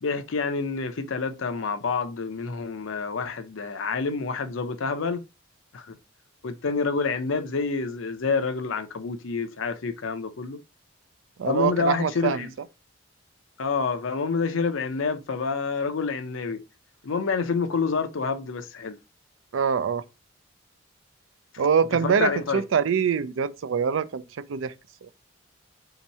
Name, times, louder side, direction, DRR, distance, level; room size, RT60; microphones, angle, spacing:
voice 1, 0.0-5.2 5.7-6.0 6.4-10.6 11.4-12.5 13.6-16.6 17.0-19.0 22.0-22.6, left 4 dB, 85° left, 0.6 m, -28 dB
voice 2, 11.4-12.5 19.5-20.0 21.6-24.2 24.5-24.7 25.0-25.1, right 6 dB, 75° right, 0.4 m, -24 dB
3.5 x 2.9 x 4.1 m
head